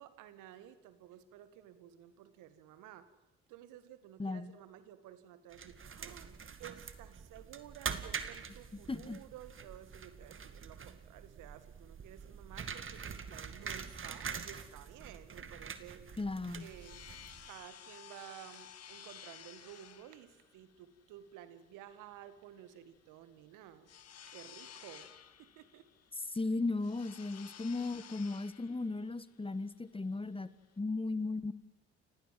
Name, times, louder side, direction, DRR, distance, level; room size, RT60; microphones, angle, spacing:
voice 1, 0.0-3.1 3.5-6.3 6.6-16.1 16.5-17.1 17.4-23.9 24.3-25.1 25.4-25.9, right 11 dB, 70° right, 12 dB, 2.0 m, -53 dB
voice 2, 4.2-4.5 8.9-9.2 16.2-16.7 26.2-30.5 30.8-31.5, left 3 dB, 15° left, 16 dB, 1.3 m, -36 dB
sound 1, 5.5-17.6, right 6 dB, 40° right, 2.3 m, -45 dB
sound 2, 16.2-30.8, left 9 dB, 50° left, 1.7 m, -55 dB
29.5 x 17.5 x 7.7 m, 1.1 s
hypercardioid pair, 50°, 32 cm